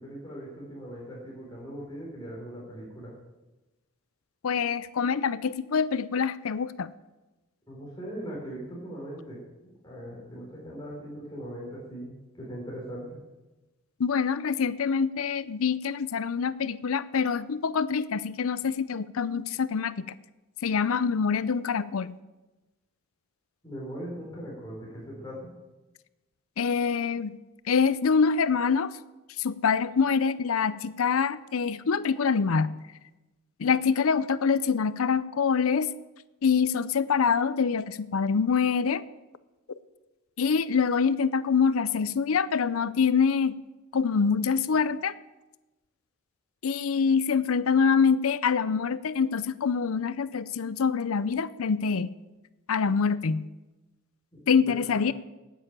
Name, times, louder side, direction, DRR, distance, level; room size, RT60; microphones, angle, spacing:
voice 1, 0.0-3.1 7.7-13.2 23.6-25.5 54.9-55.0, equal, 20° left, -4 dB, 4.2 m, -40 dB
voice 2, 4.4-6.9 14.0-19.9 20.6-22.2 26.6-27.3 27.7-28.9 29.4-32.7 33.6-35.9 36.4-39.0 40.4-43.5 43.9-45.1 46.6-52.1 52.7-53.4 54.5-55.1, left 6 dB, 80° left, 16 dB, 0.5 m, -25 dB
10.0 x 9.0 x 8.7 m, 1.1 s
head